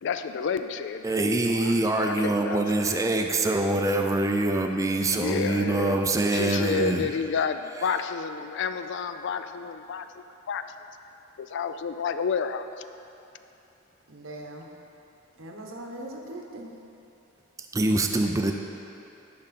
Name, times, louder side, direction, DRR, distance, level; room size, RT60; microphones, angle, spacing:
voice 1, 0.0-3.3 5.2-6.0 6.3-10.6 11.4-12.7 18.0-18.5, left 5 dB, 60° left, 10 dB, 0.3 m, -31 dB
voice 2, 1.0-7.1 17.7-18.5, right 2 dB, 15° right, 3 dB, 0.4 m, -24 dB
voice 3, 14.1-14.6 15.4-16.7, right 1 dB, 75° right, 1 dB, 1.0 m, -40 dB
10.5 x 5.3 x 4.2 m, 2.9 s
head